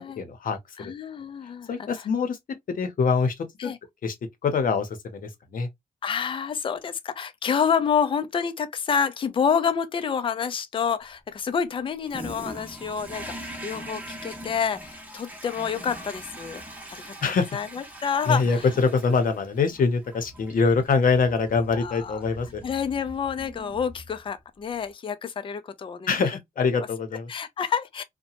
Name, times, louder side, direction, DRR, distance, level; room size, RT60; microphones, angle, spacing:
voice 1, 0.0-0.9 1.7-2.4 2.7-3.3 3.6-3.7 4.0-4.1 4.4-5.7 17.2-17.6 18.2-22.6 26.1-27.3, left 5 dB, 65° left, 0.8 m, -24 dB
voice 2, 0.8-1.9 3.6-3.8 6.0-16.6 16.9-18.7 21.7-22.2 22.6-26.1 26.6-26.7 27.3-28.0, left 7 dB, 35° left, 0.4 m, -28 dB
Toilet flush, 12.1-24.4, right 1 dB, 10° right, 0.7 m, -42 dB
2.9 x 2.1 x 2.8 m
wide cardioid pair, 145°, 15 cm